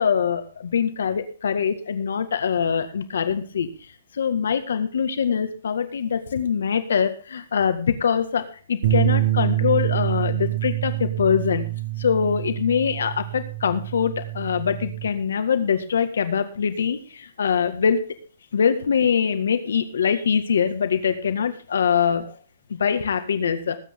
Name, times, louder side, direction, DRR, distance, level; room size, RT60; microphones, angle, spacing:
voice 1, 0.0-11.7 12.0-18.2 18.5-22.4 22.7-23.8, left 7 dB, 70° left, 9 dB, 1.8 m, -23 dB
sound 1, 8.8-15.1, right 15 dB, 55° right, 5.0 m, -26 dB
19.5 x 9.0 x 3.7 m, 0.38 s
hypercardioid pair, 180°, 0 cm